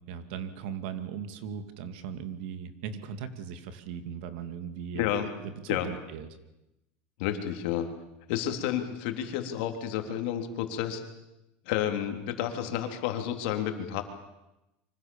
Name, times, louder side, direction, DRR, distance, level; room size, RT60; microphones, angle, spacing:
voice 1, 0.1-5.0 5.4-6.3, right 7 dB, 65° right, 9 dB, 2.5 m, -38 dB
voice 2, 4.9-5.3 5.7-5.9 7.2-7.9 8.3-11.0 11.7-14.0, left 10 dB, 65° left, 5 dB, 3.4 m, -30 dB
26.0 x 25.0 x 7.2 m, 0.94 s
supercardioid pair, 165°, 6 cm